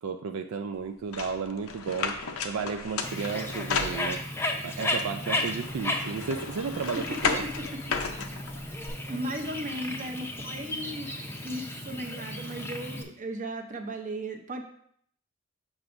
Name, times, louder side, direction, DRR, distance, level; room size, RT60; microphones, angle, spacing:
voice 1, 0.0-2.2 2.4-7.4 8.2-8.3, right 5 dB, 70° right, 7 dB, 0.4 m, -33 dB
sound 1, 1.1-4.5 5.0-8.9, left 5 dB, 75° left, 0.6 m, -34 dB
Bird, 3.0-13.0, left 1 dB, 10° left, 0.6 m, -34 dB
voice 2, 9.1-11.1 11.4-14.6, right 1 dB, 40° right, 5 dB, 0.7 m, -36 dB
7.2 x 6.0 x 2.6 m, 0.64 s
head